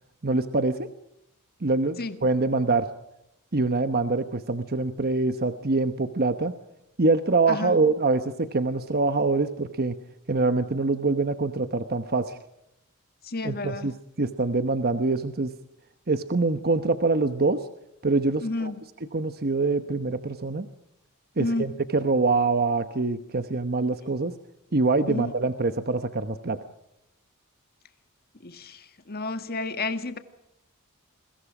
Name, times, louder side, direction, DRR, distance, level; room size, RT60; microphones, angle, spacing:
voice 1, 0.2-0.9 1.6-2.9 3.5-6.5 7.0-10.0 10.3-12.4 13.4-15.5 16.1-17.6 18.0-18.7 19.1-20.7 21.4-24.3 24.7-26.6, right 3 dB, 45° right, 9 dB, 1.0 m, -24 dB
voice 2, 13.2-13.9 18.4-18.8 21.4-21.7 25.1-25.3 28.4-30.2, left 2 dB, 45° left, 9 dB, 1.9 m, -31 dB
30.0 x 22.0 x 4.9 m, 0.82 s
head